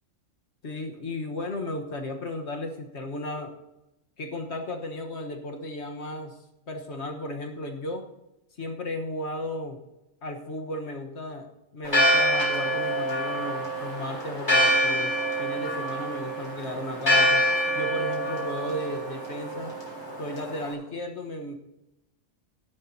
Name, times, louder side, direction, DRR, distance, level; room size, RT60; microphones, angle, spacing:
voice 1, 0.6-3.5 4.2-6.4 6.7-8.1 8.6-9.8 10.2-11.5 11.7-15.1 15.4-17.4 17.7-19.7 20.2-21.5, left 1 dB, 55° left, 3 dB, 1.6 m, -34 dB
Church bell, 11.8-20.7, equal, 20° left, 3.6 m, -26 dB
16.5 x 11.0 x 2.8 m, 0.93 s
omnidirectional pair, 1.4 m